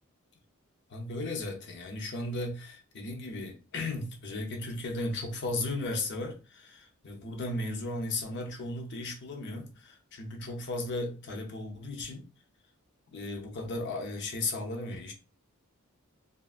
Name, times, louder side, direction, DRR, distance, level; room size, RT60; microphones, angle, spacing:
voice 1, 0.9-12.3 13.1-15.1, left 2 dB, 55° left, 0.6 m, -35 dB
2.6 x 2.4 x 2.4 m
head